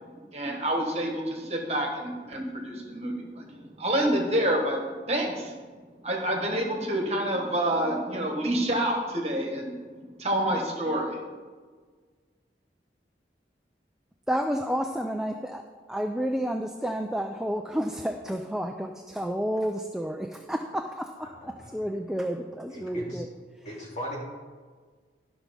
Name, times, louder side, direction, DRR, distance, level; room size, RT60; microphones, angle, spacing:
voice 1, 0.3-4.8 5.1-5.6 6.0-9.8 10.2-11.2, right 1 dB, 35° right, 1 dB, 1.5 m, -28 dB
voice 2, 14.3-15.6 15.9-23.3 23.5-23.7, equal, 5° right, 4 dB, 0.4 m, -30 dB
voice 3, 21.2-21.7 22.7-23.2 23.6-24.2, equal, 40° left, -4 dB, 2.6 m, -38 dB
11.5 x 6.1 x 5.2 m, 1.5 s
head